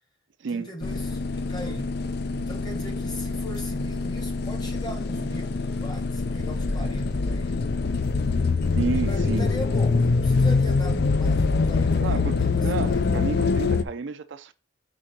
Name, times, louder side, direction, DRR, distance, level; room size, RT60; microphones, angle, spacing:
voice 1, 0.5-1.2 1.5-2.0 2.3-8.0 8.9-13.0, equal, 20° left, 1.1 m, -39 dB
sound 1, 0.8-13.8, left 4 dB, 55° left, 0.5 m, -24 dB
voice 2, 8.7-9.5 12.0-14.5, right 4 dB, 65° right, 0.5 m, -31 dB
5.1 x 3.8 x 5.8 m
head